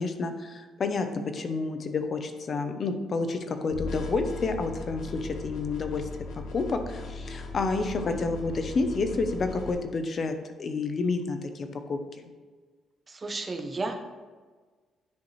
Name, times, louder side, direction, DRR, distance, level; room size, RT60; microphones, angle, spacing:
voice 1, 0.0-6.1 6.5-12.3, left 3 dB, 35° left, 7 dB, 0.7 m, -30 dB
sound 1, 3.7-9.7, left 3 dB, 90° left, 1.6 m, -38 dB
voice 2, 13.1-13.9, right 3 dB, 20° right, 4 dB, 0.7 m, -33 dB
10.5 x 5.2 x 3.2 m, 1.4 s
cardioid pair, 170°, 0 cm